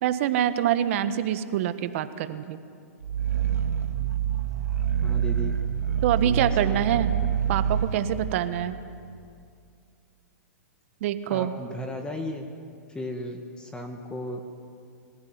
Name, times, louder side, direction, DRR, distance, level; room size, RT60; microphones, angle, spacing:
voice 1, 0.0-2.6 6.0-7.1 7.5-8.8 11.0-11.5, right 11 dB, 55° right, 11 dB, 1.4 m, -25 dB
Growling, 3.0-8.0, right 8 dB, 85° right, 2.2 m, -26 dB
voice 2, 5.0-5.5 6.2-6.8 11.3-12.5 12.9-14.4, left 1 dB, 10° left, 3 dB, 1.9 m, -35 dB
25.5 x 15.5 x 9.5 m, 2.3 s
hypercardioid pair, 120°, 8 cm